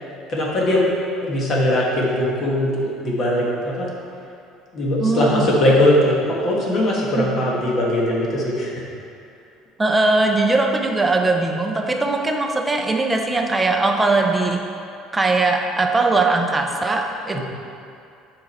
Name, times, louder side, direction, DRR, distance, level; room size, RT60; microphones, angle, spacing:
voice 1, 0.3-0.9 1.2-3.9 4.7-8.9 17.3-17.4, left 1 dB, 30° left, -3 dB, 1.2 m, -20 dB
voice 2, 5.0-5.4 7.1-7.3 9.8-14.6 15.1-17.4, right 3 dB, 10° right, 3 dB, 0.5 m, -20 dB
7.7 x 5.0 x 4.1 m, 2.6 s
cardioid pair, 170°, 0 cm